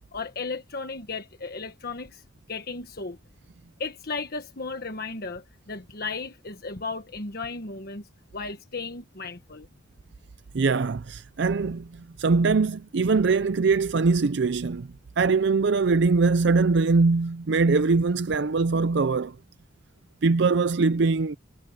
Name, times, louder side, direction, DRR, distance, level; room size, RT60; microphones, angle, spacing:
voice 1, 0.1-2.2 2.5-3.2 3.8-8.0 8.3-9.7, left 4 dB, 50° left, 1.4 m, -35 dB
voice 2, 10.5-14.9 15.2-19.4 20.2-21.4, right 4 dB, 60° right, 0.5 m, -22 dB
head